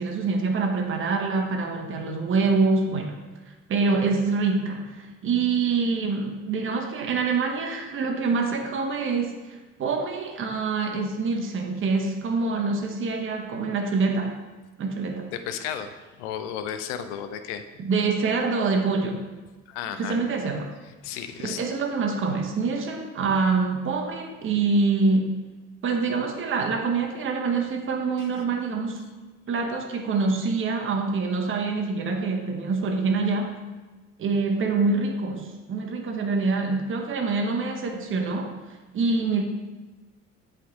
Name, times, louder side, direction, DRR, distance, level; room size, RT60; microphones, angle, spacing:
voice 1, 0.0-3.2 3.5-14.4 14.8-15.3 17.8-19.2 20.0-20.7 21.4-25.4 25.8-29.0 29.5-33.5 34.2-38.6 38.9-39.4, right 4 dB, 30° right, 3 dB, 0.9 m, -25 dB
voice 2, 15.3-17.6 19.7-20.2 21.0-21.6 28.2-28.3, left 9 dB, 65° left, 9 dB, 0.6 m, -33 dB
8.2 x 3.4 x 3.8 m, 1.2 s
figure-of-eight pair, 55°, 38 cm